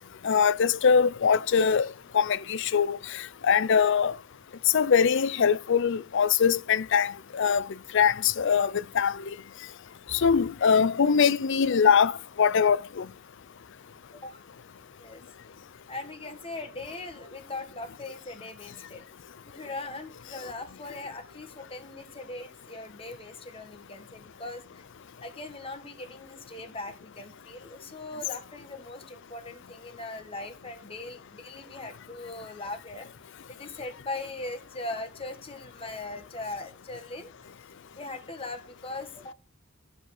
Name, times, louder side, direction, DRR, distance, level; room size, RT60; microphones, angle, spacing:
voice 1, 0.2-1.9 2.1-4.2 4.7-7.7 7.9-9.2 10.1-13.1, left 6 dB, 60° left, 0.5 m, -23 dB
voice 2, 14.1-14.4 15.0-15.2 15.9-19.0 19.5-24.9 25.2-33.1 33.5-37.3 37.9-39.3, left 2 dB, 25° left, 1.6 m, -40 dB
13.0 x 5.7 x 5.9 m
head